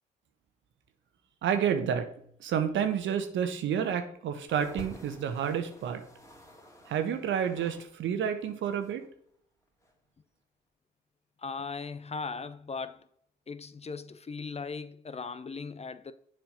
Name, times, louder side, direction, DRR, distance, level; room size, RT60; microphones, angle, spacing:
voice 1, 1.4-2.1 2.4-6.0 6.9-9.0, right 8 dB, 65° right, 1.1 m, -29 dB
sound 1, 4.5-7.9 8.2-9.1 9.8-9.9, equal, 15° left, 2.3 m, -50 dB
voice 2, 11.4-13.0 13.5-16.1, left 4 dB, 30° left, 0.7 m, -38 dB
7.3 x 5.0 x 5.2 m
hypercardioid pair, 50°, 21 cm